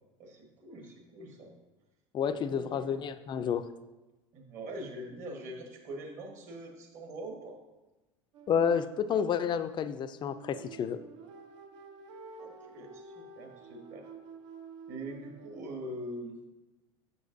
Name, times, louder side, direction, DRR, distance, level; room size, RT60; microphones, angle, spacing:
voice 1, 0.2-1.5 2.3-2.9 4.3-7.6 12.4-14.0 14.9-16.3, right 1 dB, 50° right, 2 dB, 1.4 m, -43 dB
voice 2, 2.1-3.7 8.5-11.0, left 7 dB, 30° left, 12 dB, 0.4 m, -30 dB
sound 1, 8.3-15.6, right 4 dB, 70° right, 0.6 m, -50 dB
6.9 x 6.1 x 2.6 m, 1.1 s
hypercardioid pair, 70°, 16 cm